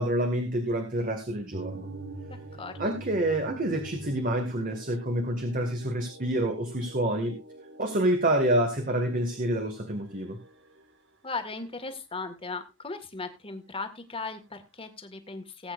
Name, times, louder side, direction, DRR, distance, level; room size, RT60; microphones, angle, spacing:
voice 1, 0.0-1.9 2.8-7.3 7.8-10.4, right 1 dB, 45° right, 5 dB, 2.0 m, -27 dB
sound 1, 1.5-10.9, right 2 dB, 65° right, 1.8 m, -45 dB
voice 2, 2.3-2.9 11.2-15.7, left 3 dB, 30° left, 7 dB, 1.8 m, -37 dB
19.5 x 8.7 x 2.5 m, 0.26 s
head